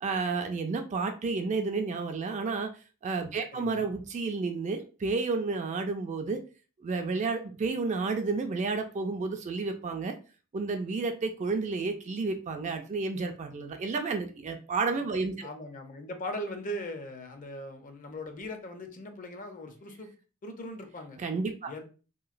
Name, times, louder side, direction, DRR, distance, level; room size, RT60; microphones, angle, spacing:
voice 1, 0.0-2.7 3.0-6.4 6.8-10.1 10.5-15.5 21.2-21.7, right 4 dB, 35° right, 5 dB, 0.3 m, -31 dB
voice 2, 3.5-3.9 15.4-20.1 20.4-21.2 21.7-21.8, left 1 dB, 40° left, 5 dB, 0.5 m, -39 dB
2.9 x 2.7 x 2.4 m, 0.35 s
head